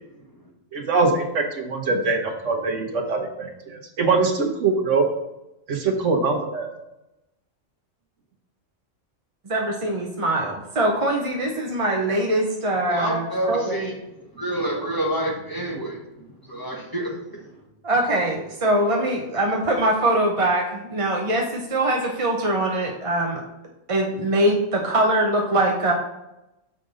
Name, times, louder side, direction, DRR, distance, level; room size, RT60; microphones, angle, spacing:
voice 1, 0.7-5.1 5.7-6.7, right 4 dB, 70° right, 3 dB, 1.4 m, -23 dB
voice 2, 9.5-13.8 17.8-23.4 23.9-25.9, right 1 dB, 30° right, 0 dB, 0.7 m, -22 dB
voice 3, 12.9-17.7, right 1 dB, 15° left, -2 dB, 1.4 m, -29 dB
6.7 x 5.0 x 4.0 m, 0.92 s
omnidirectional pair, 1.3 m